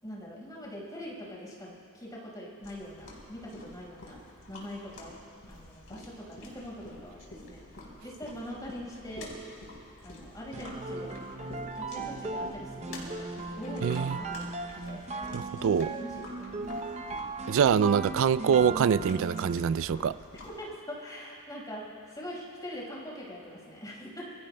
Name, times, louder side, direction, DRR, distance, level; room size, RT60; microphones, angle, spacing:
voice 1, 0.0-4.2 4.5-5.2 5.5-7.6 8.0-9.3 10.0-14.6 14.8-15.0 16.0-16.3 20.4-24.2, equal, 15° left, -4 dB, 4.8 m, -43 dB
sound 1, 2.6-20.6, left 1 dB, 65° left, 3.8 m, -48 dB
sound 2, 10.5-19.7, right 3 dB, 30° right, 0.7 m, -37 dB
voice 2, 13.8-14.2 15.3-15.9 17.5-20.1, right 7 dB, 60° right, 16 dB, 0.3 m, -25 dB
27.0 x 23.0 x 2.2 m, 2.8 s
head